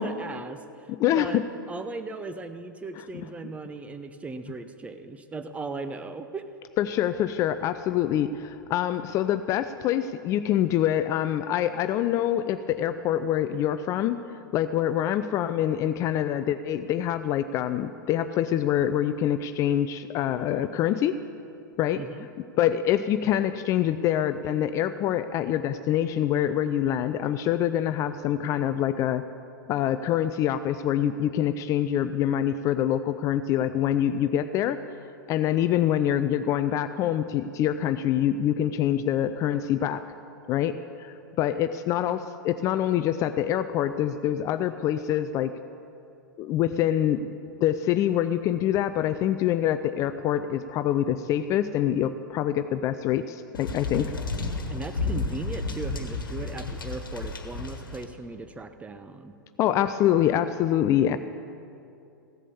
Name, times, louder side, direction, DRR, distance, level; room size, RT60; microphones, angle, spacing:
voice 1, 0.0-1.4 1.7-6.5 22.0-22.3 54.7-59.3, right 3 dB, 10° right, 9 dB, 0.7 m, -37 dB
voice 2, 1.0-1.4 6.8-14.2 14.5-21.1 21.8-22.0 22.6-29.2 29.7-34.8 35.3-40.0 40.5-45.5 46.4-47.3 47.6-54.1 59.6-61.2, left 11 dB, 30° left, 11 dB, 0.4 m, -25 dB
sound 1, 53.5-58.0, left 3 dB, 75° left, 1.4 m, -32 dB
15.5 x 8.2 x 7.0 m, 2.6 s
figure-of-eight pair, 100°, 11 cm